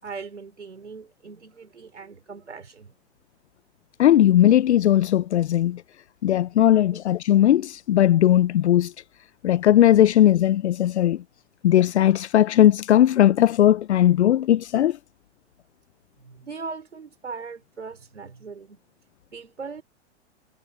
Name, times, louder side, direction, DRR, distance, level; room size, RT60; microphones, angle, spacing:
voice 1, 0.0-2.9 16.2-18.8 19.3-19.8, right 5 dB, 85° right, 5.2 m, -39 dB
voice 2, 4.0-5.8 6.2-8.9 9.4-11.2 11.6-15.0, left 12 dB, 70° left, 0.7 m, -18 dB
hypercardioid pair, 110°, 34 cm